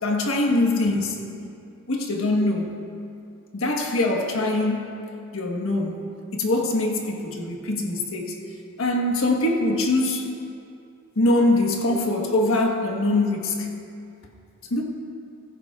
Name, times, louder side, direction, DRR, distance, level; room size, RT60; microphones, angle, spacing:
voice 1, 0.0-1.2 1.9-2.7 3.5-5.0 5.3-6.0 6.3-8.4 8.8-10.3 11.2-13.7 14.7-14.8, left 2 dB, 90° left, 1 dB, 1.4 m, -23 dB
16.0 x 15.0 x 2.4 m, 2.5 s
head